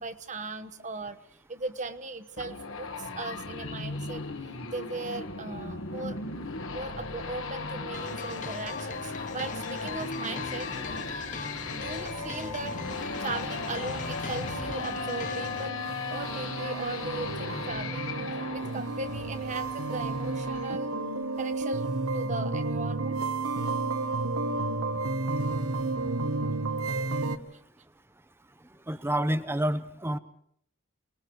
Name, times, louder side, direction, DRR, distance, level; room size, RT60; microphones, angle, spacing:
voice 1, 0.0-4.2 4.7-6.2 6.7-10.7 11.7-15.8 16.1-18.1 18.5-20.9 21.4-23.2 23.9-24.1, right 3 dB, 35° right, 10 dB, 1.1 m, -38 dB
sound 1, 2.4-20.8, left 3 dB, 60° left, 1.8 m, -37 dB
sound 2, 7.9-15.7, left 4 dB, 35° left, 1.0 m, -39 dB
sound 3, 10.4-27.4, right 3 dB, 70° right, 1.3 m, -33 dB
voice 2, 28.9-30.2, right 1 dB, 10° right, 12 dB, 0.8 m, -28 dB
28.5 x 20.0 x 4.7 m, 0.66 s
head